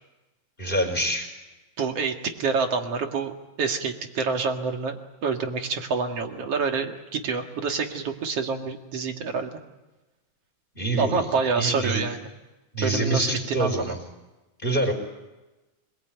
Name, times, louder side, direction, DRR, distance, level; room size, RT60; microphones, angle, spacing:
voice 1, 0.6-1.3 10.7-11.3 11.6-12.0 12.7-14.0 14.6-14.9, right 1 dB, 10° left, 2 dB, 4.6 m, -26 dB
voice 2, 1.8-9.5 11.0-12.3 12.8-13.9, right 5 dB, 45° right, 4 dB, 2.4 m, -27 dB
25.5 x 22.0 x 9.3 m, 1.1 s
omnidirectional pair, 4.5 m